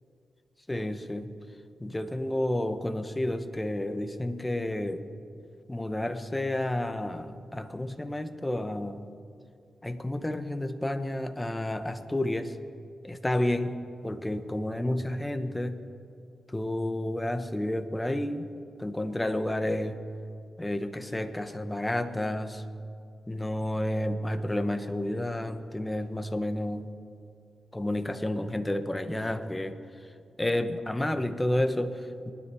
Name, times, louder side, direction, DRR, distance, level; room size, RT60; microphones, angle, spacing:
voice 1, 0.7-1.3 1.8-5.0 5.7-9.0 9.8-12.6 13.0-13.8 14.0-15.8 16.5-18.5 18.8-20.0 20.6-22.6 23.3-26.9 27.7-29.8 30.4-32.3, left 1 dB, 15° left, 9 dB, 1.1 m, -30 dB
26.0 x 10.0 x 4.6 m, 2.4 s
cardioid pair, 55°, 0 cm